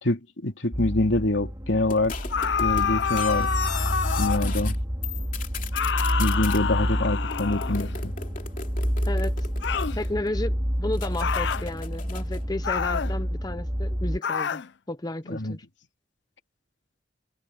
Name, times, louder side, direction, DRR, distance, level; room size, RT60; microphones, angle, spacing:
voice 1, 0.0-2.2 2.6-3.5 4.2-4.8 6.2-8.1 15.3-15.6, left 2 dB, 85° left, 2.6 m, -25 dB
sound 1, 0.7-14.2, equal, 20° right, 3.4 m, -29 dB
sound 2, 1.9-4.8 5.0-6.6 7.3-10.3 10.9-12.5, left 7 dB, 45° left, 2.8 m, -38 dB
sound 3, 2.3-4.6 5.7-8.0 9.6-10.0 11.2-11.7 12.6-13.2 14.2-14.7, left 7 dB, 70° left, 0.5 m, -28 dB
voice 2, 9.0-9.5 9.9-14.6 14.9-15.7, left 2 dB, 20° left, 0.8 m, -33 dB
head